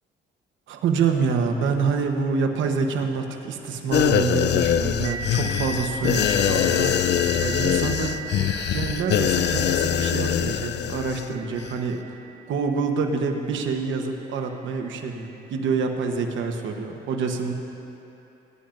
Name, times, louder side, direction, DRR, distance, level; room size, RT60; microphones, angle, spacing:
voice 1, 0.7-7.0 7.4-8.2 8.7-12.0 12.5-17.5, right 5 dB, 75° right, 3 dB, 1.1 m, -26 dB
sound 1, 3.9-11.3 11.6-11.7, left 9 dB, 60° left, 0.4 m, -23 dB
sound 2, 5.0-14.3, right 4 dB, 40° right, 2.0 m, -39 dB
20.5 x 10.0 x 2.6 m, 3.0 s
cardioid pair, 90°, 20 cm